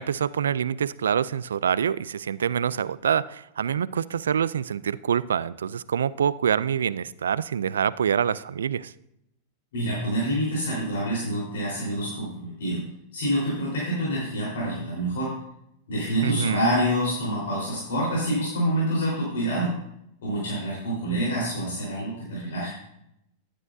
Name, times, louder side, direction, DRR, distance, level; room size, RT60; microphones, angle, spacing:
voice 1, 0.0-8.9 16.2-16.7, right 8 dB, 85° right, 18 dB, 0.3 m, -26 dB
voice 2, 9.7-12.8 13.1-15.3 15.9-19.7 20.2-22.7, right 1 dB, 80° left, -6 dB, 4.0 m, -27 dB
12.5 x 9.8 x 2.7 m, 0.79 s
hypercardioid pair, 110°, 0 cm